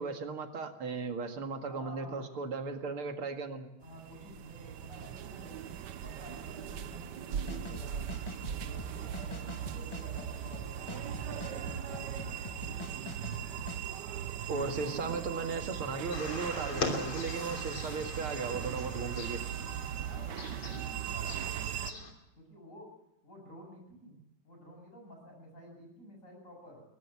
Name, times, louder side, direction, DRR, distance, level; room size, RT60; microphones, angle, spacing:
voice 1, 0.0-3.7 14.5-19.4, right 4 dB, 90° right, 5 dB, 2.9 m, -36 dB
voice 2, 1.6-2.2 3.8-5.8 6.0-8.1 8.6-12.4 19.8-22.1 22.4-22.9 23.2-24.2 24.4-26.8, equal, 35° left, 1 dB, 8.4 m, -51 dB
sound 1, 3.8-21.9, right 9 dB, 60° right, 1.4 m, -39 dB
sound 2, 7.4-13.8, left 2 dB, 15° left, 1.2 m, -45 dB
sound 3, 16.1-22.1, left 3 dB, 70° left, 3.9 m, -41 dB
22.0 x 18.0 x 7.2 m, 0.86 s
omnidirectional pair, 2.3 m